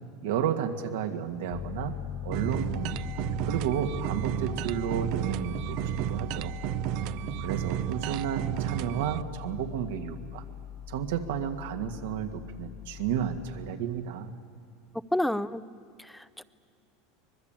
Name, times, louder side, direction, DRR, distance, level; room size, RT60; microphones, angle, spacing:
voice 1, 0.2-1.9 2.2-3.0 3.4-6.5 7.4-10.4 10.9-14.3, right 8 dB, 85° right, 5 dB, 2.0 m, -32 dB
Piano, 1.5-13.7, left 10 dB, 60° left, 2.7 m, -41 dB
sound 1, 2.3-9.2, right 15 dB, 60° right, 0.6 m, -32 dB
voice 2, 15.1-15.6 16.0-16.4, left 1 dB, 5° left, 16 dB, 0.6 m, -29 dB
24.5 x 21.0 x 9.1 m, 2.4 s
supercardioid pair, 130°, 0 cm